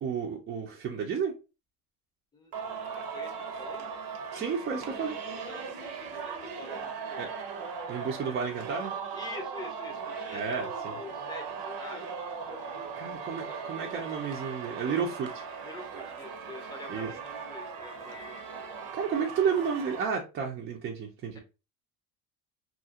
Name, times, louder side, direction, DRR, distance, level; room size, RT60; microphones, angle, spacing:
voice 1, 0.0-1.3 4.3-5.2 7.2-7.3 7.9-8.9 10.3-11.0 13.0-15.4 16.9-17.1 18.9-21.4, right 6 dB, 30° right, 0 dB, 0.4 m, -32 dB
Singing, 2.5-20.1, right 5 dB, 85° right, 0.8 m, -39 dB
voice 2, 2.9-3.9 5.5-7.2 9.1-12.1 12.5-14.0 15.6-18.8, left 3 dB, 10° left, 2 dB, 0.6 m, -46 dB
2.7 x 2.4 x 2.7 m, 0.29 s
cardioid pair, 150°, 39 cm